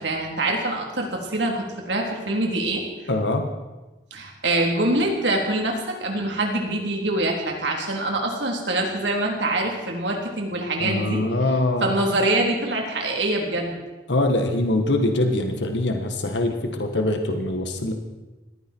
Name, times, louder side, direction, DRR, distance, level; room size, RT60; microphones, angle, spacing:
voice 1, 0.0-2.8 4.1-11.2 11.8-13.8, right 1 dB, 80° right, 1 dB, 3.6 m, -24 dB
voice 2, 3.1-3.5 10.8-11.9 14.1-17.9, left 2 dB, 85° left, 5 dB, 1.6 m, -23 dB
20.0 x 15.5 x 4.6 m, 1.1 s
head